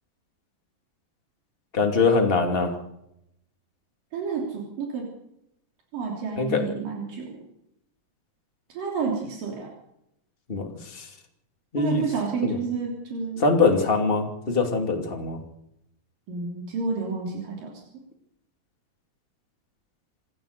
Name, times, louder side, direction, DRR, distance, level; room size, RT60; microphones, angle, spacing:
voice 1, 1.7-2.7 6.4-6.6 10.5-11.0 11.7-12.0 12.4-12.6 13.4-15.4, left 4 dB, 20° left, 3 dB, 2.5 m, -22 dB
voice 2, 4.1-5.1 5.9-7.4 8.7-9.7 11.8-13.5 16.3-17.7, right 5 dB, 80° right, -1 dB, 5.0 m, -30 dB
26.5 x 15.0 x 6.8 m, 0.81 s
omnidirectional pair, 3.8 m